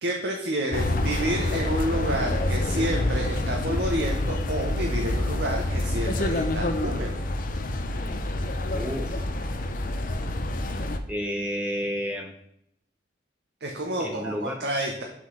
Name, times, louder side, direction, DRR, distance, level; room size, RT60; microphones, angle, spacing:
voice 1, 0.0-7.2 13.6-15.0, right 1 dB, 65° right, 1 dB, 0.9 m, -29 dB
sound 1, 0.7-11.0, left 1 dB, 45° left, 0.6 m, -27 dB
voice 2, 8.7-9.2 11.1-12.3 14.0-14.6, equal, 5° right, 2 dB, 0.5 m, -31 dB
6.1 x 3.9 x 6.1 m, 0.78 s
head